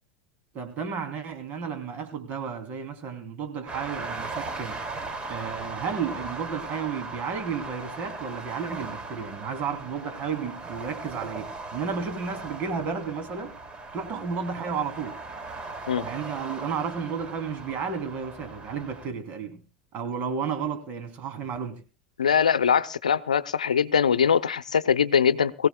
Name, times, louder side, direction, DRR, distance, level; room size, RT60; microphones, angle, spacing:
voice 1, 0.5-4.8 5.3-13.5 13.9-15.2 16.0-19.6 19.9-21.8, right 6 dB, 45° right, 2.9 m, -32 dB
sound 1, 3.7-19.1, right 3 dB, 30° right, 2.4 m, -38 dB
voice 2, 22.2-25.7, left 7 dB, 85° left, 0.6 m, -22 dB
23.5 x 16.0 x 2.2 m
hypercardioid pair, 85°, 4 cm